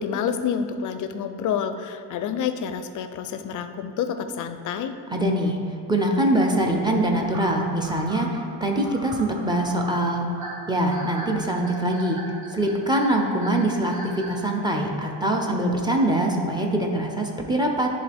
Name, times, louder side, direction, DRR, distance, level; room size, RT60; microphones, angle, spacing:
voice 1, 0.0-5.0, left 7 dB, 45° left, 9 dB, 0.5 m, -28 dB
voice 2, 5.1-10.3 10.7-12.2 12.5-17.9, right 1 dB, 10° right, 0 dB, 0.6 m, -23 dB
sound 1, 7.3-14.4, right 1 dB, 40° right, 1.4 m, -40 dB
11.0 x 3.8 x 3.4 m, 2.5 s
cardioid pair, 135°, 42 cm